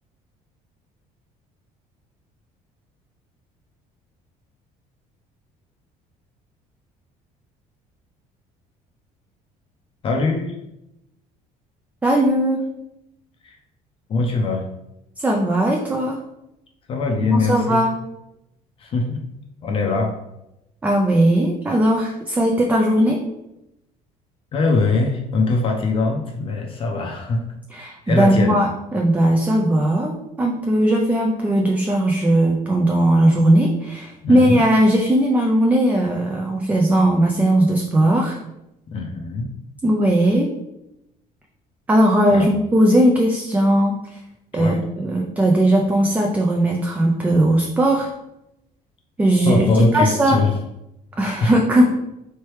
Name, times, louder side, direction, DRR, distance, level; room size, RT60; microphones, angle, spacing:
voice 1, 10.0-10.5 13.4-13.5 14.1-14.6 16.9-17.8 18.8-19.2 19.6-20.1 24.5-27.4 28.1-28.6 34.2-34.6 38.9-39.5 42.3-42.5 44.6-44.8 49.4-50.5 51.4-51.5, left 3 dB, 35° left, 2 dB, 0.6 m, -21 dB
voice 2, 12.0-12.6 15.2-16.2 17.3-17.9 20.8-23.2 27.7-38.4 39.8-40.5 41.9-44.2 44.5-48.1 49.2-50.4 51.2-51.8, right 1 dB, 10° right, 1 dB, 0.4 m, -18 dB
4.3 x 3.3 x 3.0 m, 0.87 s
cardioid pair, 150°, 15 cm